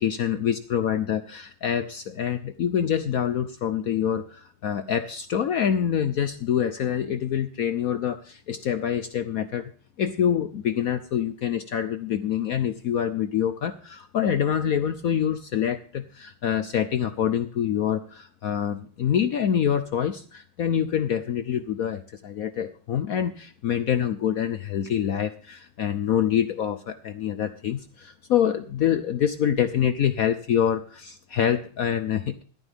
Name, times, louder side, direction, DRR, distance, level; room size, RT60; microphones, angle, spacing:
voice 1, 0.0-9.7 10.0-32.4, left 9 dB, 70° left, 11 dB, 0.8 m, -26 dB
15.0 x 12.0 x 3.5 m, 0.43 s
omnidirectional pair, 2.2 m